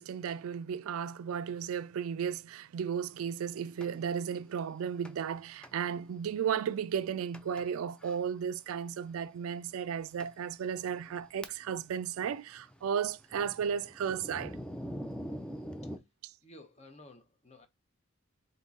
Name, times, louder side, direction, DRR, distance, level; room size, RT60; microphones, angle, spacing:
voice 1, 0.0-14.6, right 7 dB, 75° right, 0.3 m, -34 dB
Thunder, 3.8-3.9 5.0-5.3 5.6-5.8 6.4-6.5 7.3-7.7 8.0-8.2 9.1-9.2 9.8-9.9 10.2-10.3 10.9-11.9 12.1-16.0, equal, 5° left, 0.3 m, -44 dB
voice 2, 16.4-17.7, left 1 dB, 30° left, 0.7 m, -54 dB
3.7 x 2.7 x 4.0 m
head